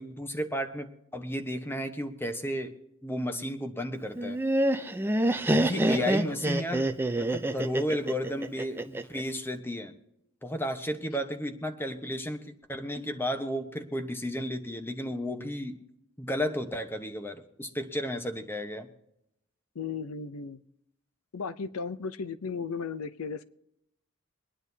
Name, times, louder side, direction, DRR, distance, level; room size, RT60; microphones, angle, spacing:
voice 1, 0.0-2.7 3.0-4.4 5.5-6.9 7.2-9.9 10.4-15.8 16.2-18.9, equal, 10° left, 7 dB, 1.1 m, -33 dB
Laughter, 4.2-9.2, right 1 dB, 10° right, 0.6 m, -26 dB
voice 2, 5.7-6.4 19.7-20.6 21.3-23.4, left 5 dB, 80° left, 13 dB, 0.7 m, -36 dB
24.0 x 10.0 x 2.8 m, 0.80 s
head